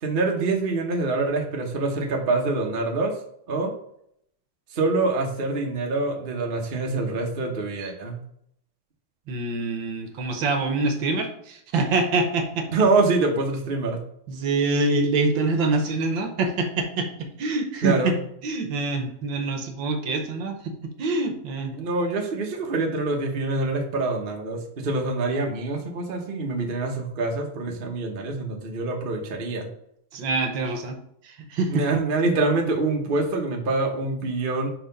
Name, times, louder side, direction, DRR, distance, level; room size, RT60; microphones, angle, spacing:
voice 1, 0.0-3.2 3.5-3.7 4.7-8.2 12.7-14.0 17.8-18.1 21.7-29.7 31.7-34.7, right 3 dB, 40° right, 1 dB, 0.8 m, -25 dB
voice 2, 9.3-12.7 14.3-18.2 18.4-21.7 30.1-31.0 31.2-31.9, right 3 dB, 70° right, 5 dB, 1.5 m, -25 dB
4.9 x 4.5 x 5.2 m, 0.71 s
omnidirectional pair, 2.3 m